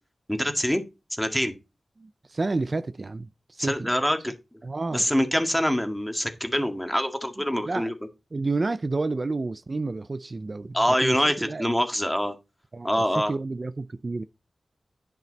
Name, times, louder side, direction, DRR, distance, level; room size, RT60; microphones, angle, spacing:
voice 1, 0.3-0.8 1.2-1.5 3.6-4.3 4.9-7.9 10.7-12.3 12.8-13.3, equal, 5° left, 1.9 m, -25 dB
voice 2, 2.0-3.9 4.6-5.1 7.6-7.9 8.3-10.8 11.0-11.6 12.7-14.2, right 3 dB, 45° right, 0.5 m, -30 dB
10.5 x 6.0 x 4.1 m
wide cardioid pair, 65°, 0 cm